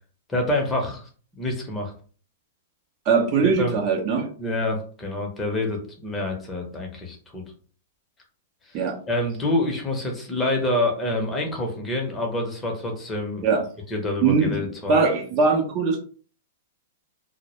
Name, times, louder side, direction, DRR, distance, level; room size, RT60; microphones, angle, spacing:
voice 1, 0.3-1.0 1.4-1.9 3.4-3.8 4.4-7.4 8.7-8.8 9.1-13.5 13.9-15.0, left 1 dB, 15° left, 1 dB, 0.7 m, -27 dB
voice 2, 3.1-4.3 8.7-9.0 13.4-13.6 14.2-14.6 14.9-16.0, right 5 dB, 40° right, 2 dB, 0.6 m, -21 dB
2.1 x 2.0 x 2.9 m, 0.42 s
hypercardioid pair, 125°, 0 cm